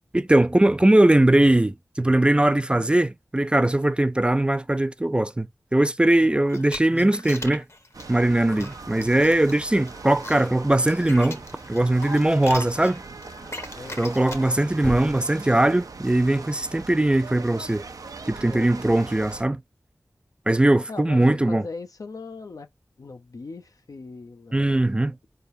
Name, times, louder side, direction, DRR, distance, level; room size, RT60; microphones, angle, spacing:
voice 1, 0.1-7.6 8.1-11.4 11.7-13.0 14.0-17.8 18.3-19.6 20.5-21.6 24.5-25.2, right 1 dB, 15° right, 0.3 m, -20 dB
sound 1, 6.4-14.6, left 2 dB, 50° left, 1.0 m, -41 dB
sound 2, 7.9-19.4, right 4 dB, 75° right, 0.6 m, -41 dB
sound 3, 10.4-16.3, left 1 dB, 20° left, 0.7 m, -43 dB
voice 2, 18.4-19.0 20.9-22.7 23.0-24.9, left 4 dB, 75° left, 0.6 m, -39 dB
4.6 x 3.4 x 2.6 m
wide cardioid pair, 65°, 6 cm